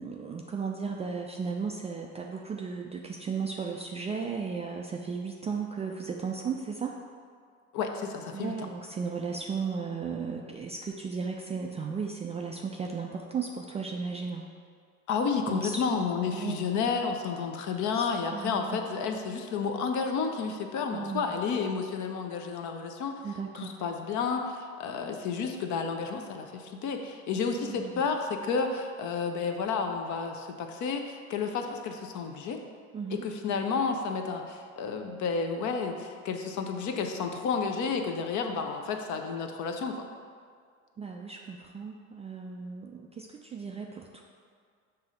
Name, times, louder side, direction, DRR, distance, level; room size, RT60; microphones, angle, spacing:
voice 1, 0.0-6.9 8.3-14.4 15.5-16.6 17.9-18.8 20.9-21.3 23.2-23.7 27.6-28.0 32.9-33.2 41.0-44.2, right 5 dB, 15° right, 0 dB, 0.3 m, -35 dB
voice 2, 7.7-8.5 15.1-23.2 23.5-32.6 33.1-40.0, left 5 dB, 45° left, 5 dB, 0.7 m, -31 dB
6.9 x 2.8 x 4.9 m, 2.1 s
hypercardioid pair, 65°, 40 cm